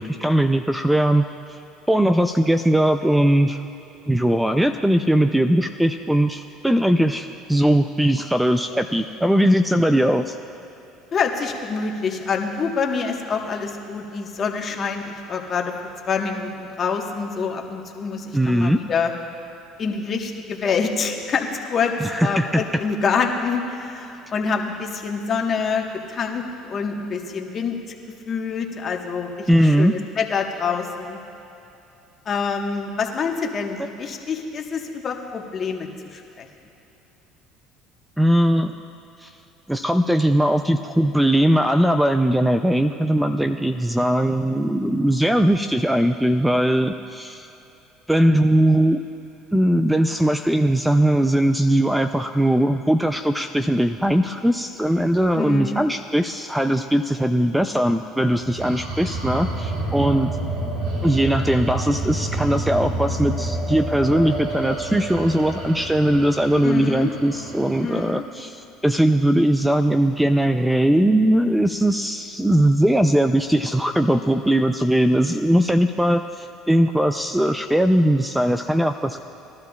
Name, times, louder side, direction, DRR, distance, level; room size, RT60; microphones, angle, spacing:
voice 1, 0.0-1.6 1.9-3.6 4.1-10.4 18.3-18.8 22.0-22.6 29.5-29.9 38.2-38.7 39.2-39.3 39.7-47.5 48.1-49.0 49.5-60.3 61.0-79.2, right 1 dB, 5° right, 8 dB, 0.4 m, -20 dB
voice 2, 11.1-15.7 16.1-19.1 19.8-21.9 22.2-27.8 28.3-31.2 32.2-36.5 55.3-55.8 66.6-67.1 67.8-68.2, left 5 dB, 40° left, 2 dB, 1.3 m, -26 dB
sound 1, 58.3-68.0, right 2 dB, 85° right, 2.8 m, -29 dB
20.5 x 12.5 x 2.4 m, 3.0 s
supercardioid pair, 95°, 0 cm